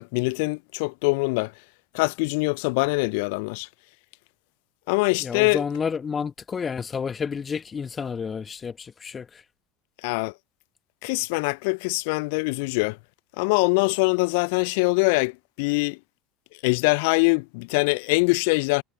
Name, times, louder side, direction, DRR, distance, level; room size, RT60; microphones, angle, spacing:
voice 1, 0.0-1.5 1.9-3.7 4.9-5.6 10.0-10.3 11.0-13.0 13.4-16.0 16.6-18.8, left 30 dB, 60° left, 0.8 m, -23 dB
voice 2, 5.2-9.4, left 6 dB, 25° left, 1.8 m, -30 dB
figure-of-eight pair, 70°, 0 cm